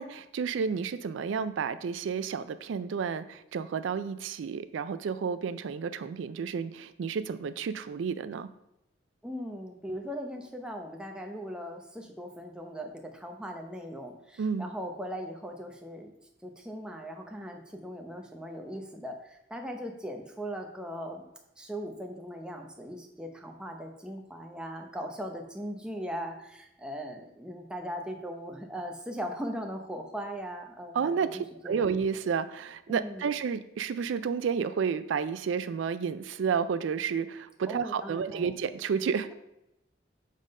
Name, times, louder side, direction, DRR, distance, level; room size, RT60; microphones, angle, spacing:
voice 1, 0.0-8.5 14.4-14.7 30.9-39.3, right 6 dB, 85° right, 13 dB, 0.4 m, -31 dB
voice 2, 9.2-16.1 16.4-21.2 21.6-31.9 32.9-33.3 37.7-38.5, equal, 5° right, 2 dB, 0.7 m, -39 dB
7.4 x 3.7 x 5.3 m, 0.87 s
head